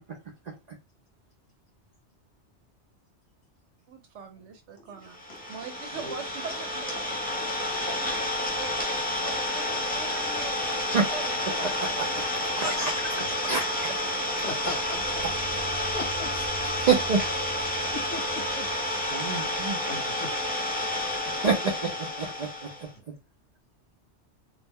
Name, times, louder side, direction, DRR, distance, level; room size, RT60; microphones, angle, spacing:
voice 1, 0.5-0.8 6.0-6.1 10.9-11.1 11.6-12.3 12.6-13.1 13.5-13.6 16.8-17.2 19.1-19.8 21.4-22.9, right 5 dB, 55° right, 0.5 m, -28 dB
voice 2, 3.9-5.2 5.5-8.7 9.2-12.9 13.2-13.3, right 6 dB, 80° right, 1.0 m, -42 dB
voice 3, 4.8-5.6 13.2-13.3 14.4-15.0 15.9-16.3 17.9-18.7 19.8-20.3, left 3 dB, 45° left, 0.9 m, -39 dB
Idling, 5.1-22.9, left 1 dB, 10° left, 0.5 m, -30 dB
sound 1, 14.7-19.9, left 1 dB, 70° left, 0.9 m, -44 dB
2.4 x 2.0 x 3.4 m
omnidirectional pair, 1.2 m